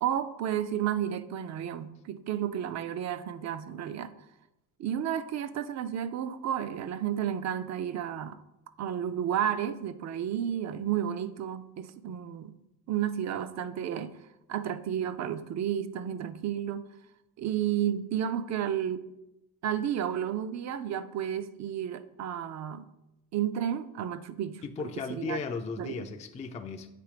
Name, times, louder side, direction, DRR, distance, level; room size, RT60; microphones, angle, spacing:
voice 1, 0.0-4.1 4.8-8.4 8.8-12.5 12.9-14.1 14.5-16.9 17.4-19.1 19.6-22.9 23.3-25.4 25.8-26.0, right 10 dB, 45° right, 0.4 m, -32 dB
voice 2, 24.6-27.0, left 5 dB, 20° left, 0.3 m, -36 dB
8.4 x 3.2 x 4.9 m
cardioid pair, 140°, 38 cm